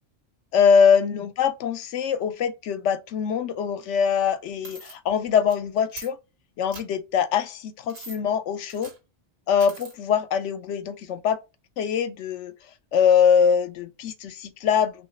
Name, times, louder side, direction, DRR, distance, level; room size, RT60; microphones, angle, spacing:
voice 1, 0.5-6.2 6.6-8.9 9.5-11.4 11.8-12.5 12.9-14.9, left 7 dB, 75° left, 0.9 m, -22 dB
sound 1, 4.6-4.9 5.5-5.6 5.9-6.1 6.7-6.8 7.9-8.2 8.7-9.0 9.6-9.9, right 3 dB, 75° right, 1.5 m, -41 dB
3.1 x 3.0 x 4.1 m
omnidirectional pair, 1.2 m